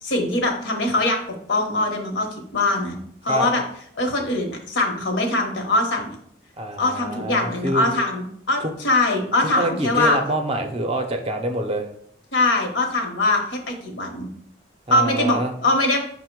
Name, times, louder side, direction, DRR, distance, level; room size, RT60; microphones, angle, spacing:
voice 1, 0.0-2.3 2.5-3.0 3.2-3.6 4.0-6.2 6.8-10.2 12.3-14.3 14.9-16.0, left 2 dB, 75° left, 3 dB, 0.9 m, -22 dB
voice 2, 6.6-7.9 9.5-11.9 14.9-15.5, right 1 dB, 30° right, 4 dB, 0.5 m, -26 dB
5.6 x 2.1 x 4.4 m, 0.66 s
head